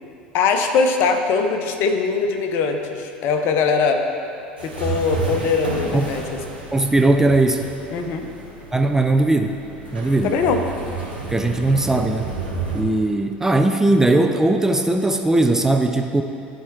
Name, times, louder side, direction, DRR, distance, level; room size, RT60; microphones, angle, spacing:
voice 1, 0.3-4.0 4.6-6.2 7.9-8.3 10.2-10.6, left 5 dB, 50° left, 5 dB, 0.7 m, -21 dB
sound 1, 4.6-12.8, right 4 dB, 85° right, 1.4 m, -31 dB
voice 2, 6.7-7.7 8.7-9.5 9.9-10.4 11.3-12.3 12.7-16.2, right 2 dB, 10° right, 5 dB, 0.4 m, -19 dB
13.0 x 4.4 x 3.2 m, 2.6 s
figure-of-eight pair, 75°, 5 cm